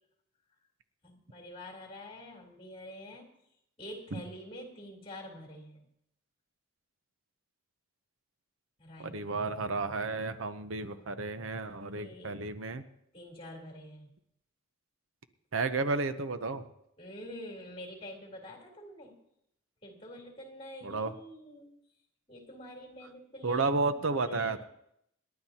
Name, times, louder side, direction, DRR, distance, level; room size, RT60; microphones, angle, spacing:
voice 1, 1.0-3.3 3.8-5.9 8.8-9.8 11.9-12.4 13.1-14.1 17.0-19.1 19.8-21.8 22.3-24.7, equal, 25° left, -1 dB, 3.6 m, -47 dB
voice 2, 9.0-12.8 15.5-16.7 20.8-21.1 23.4-24.7, right 3 dB, 75° right, 10 dB, 0.8 m, -32 dB
27.5 x 11.5 x 2.9 m, 0.76 s
head